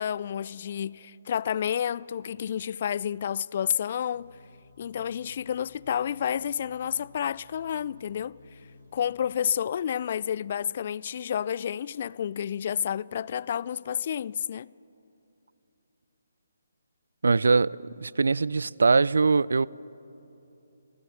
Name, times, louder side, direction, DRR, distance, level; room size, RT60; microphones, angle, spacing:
voice 1, 0.0-4.3 4.8-8.4 8.9-14.7, left 9 dB, 45° left, 0.3 m, -30 dB
sound 1, 4.1-9.3, left 3 dB, 70° left, 5.1 m, -55 dB
voice 2, 17.2-19.7, right 4 dB, 70° right, 0.3 m, -22 dB
29.5 x 16.0 x 5.7 m
figure-of-eight pair, 145°, 0 cm